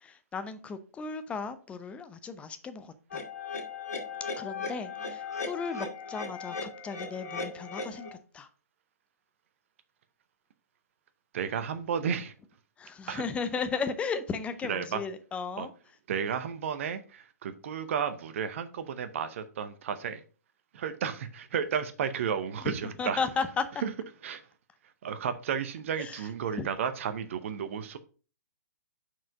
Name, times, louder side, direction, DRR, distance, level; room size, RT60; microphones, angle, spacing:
voice 1, 0.0-3.2 4.4-8.5 12.8-15.7 22.6-23.7 26.0-26.2 26.6-26.7, left 5 dB, 15° left, 0.7 m, -35 dB
sound 1, 3.1-8.1, left 4 dB, 65° left, 2.2 m, -37 dB
voice 2, 11.3-12.3 13.1-13.2 14.7-15.0 15.6-15.7 16.1-20.2 20.7-23.2 23.8-23.9 24.2-24.4 25.0-28.0, right 7 dB, 50° right, 0.7 m, -32 dB
5.9 x 4.7 x 5.1 m
figure-of-eight pair, 120°, 9 cm